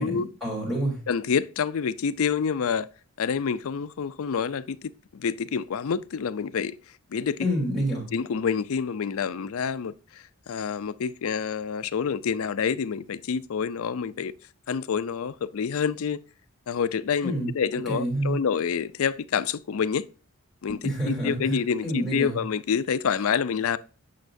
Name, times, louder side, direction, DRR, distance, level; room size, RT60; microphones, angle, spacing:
voice 1, 0.0-1.0 7.4-8.1 17.2-17.5 17.8-18.4 20.8-22.4, right 1 dB, ahead, 3.3 m, -28 dB
voice 2, 1.1-2.9 3.2-6.8 7.1-7.5 8.1-9.9 10.5-14.3 14.7-16.2 16.7-20.0 20.6-20.8 21.2-23.8, left 6 dB, 70° left, 0.4 m, -27 dB
8.4 x 6.6 x 2.6 m
head